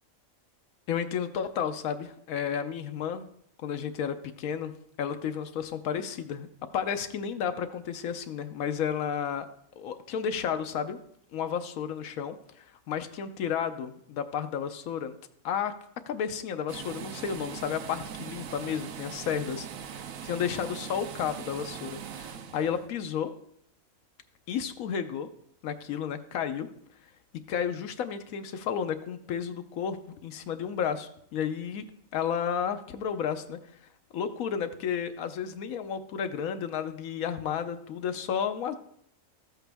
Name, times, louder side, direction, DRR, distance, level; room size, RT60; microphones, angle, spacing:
voice 1, 0.9-3.3 3.6-4.7 5.0-6.5 6.7-9.5 9.8-11.0 11.3-15.1 15.4-15.7 16.1-19.7 20.2-23.3 24.5-25.3 25.6-26.7 27.5-31.9 32.1-33.6 34.1-38.7, left 8 dB, 85° left, 8 dB, 1.1 m, -32 dB
sound 1, 16.7-22.9, right 8 dB, 80° right, 1.1 m, -41 dB
13.0 x 8.0 x 3.4 m, 0.68 s
omnidirectional pair, 1.4 m